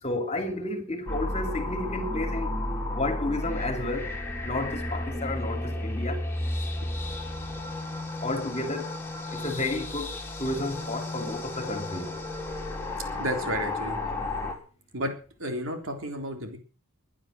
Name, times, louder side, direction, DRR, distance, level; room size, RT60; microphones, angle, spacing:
voice 1, 0.0-2.5 2.9-4.2 4.4-6.2 7.6-7.7 8.2-9.0 9.3-12.1, left 2 dB, 30° left, 2.7 m, -31 dB
sound 1, 1.1-14.5, left 2 dB, 10° left, 3.7 m, -33 dB
voice 2, 13.2-14.0 14.9-15.1 15.4-16.6, right 1 dB, 65° right, 3.7 m, -31 dB
21.0 x 10.5 x 6.3 m
head